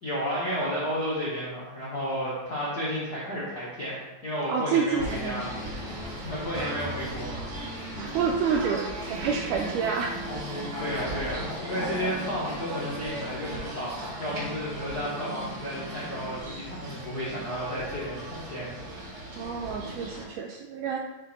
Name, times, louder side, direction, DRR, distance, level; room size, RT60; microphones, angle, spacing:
voice 1, 0.0-5.5 6.2-7.6 10.8-18.7 19.0-19.2, equal, 80° left, -7 dB, 0.8 m, -32 dB
voice 2, 4.5-5.6 8.0-10.2 19.4-21.0, right 6 dB, 85° right, 1 dB, 1.8 m, -28 dB
sound 1, 4.9-9.4 10.2-13.8, left 2 dB, 55° left, 1.4 m, -42 dB
Singing / Bird, 5.0-20.2, right 1 dB, 60° right, 4.0 m, -37 dB
9.0 x 3.4 x 4.2 m, 1.1 s
omnidirectional pair, 4.1 m